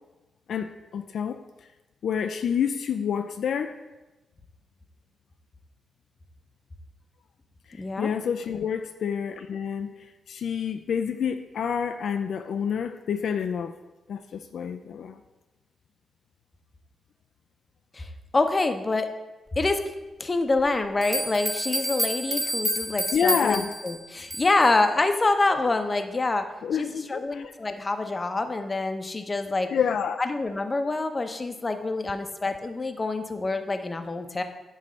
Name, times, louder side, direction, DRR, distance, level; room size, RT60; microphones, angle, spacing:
voice 1, 0.5-1.4 2.0-3.8 7.7-13.7 14.1-15.2 23.1-23.7 26.6-27.5 29.7-30.2, left 7 dB, 75° left, 7 dB, 0.4 m, -28 dB
voice 2, 7.8-8.1 17.9-19.1 19.6-19.8 20.2-26.5 26.7-29.7 30.2-34.4, left 3 dB, 30° left, 7 dB, 0.7 m, -26 dB
sound 1, 20.6-20.7 21.0-24.7, equal, 20° right, 1.5 m, -29 dB
9.7 x 3.3 x 6.2 m, 1.1 s
cardioid pair, 80°, 0 cm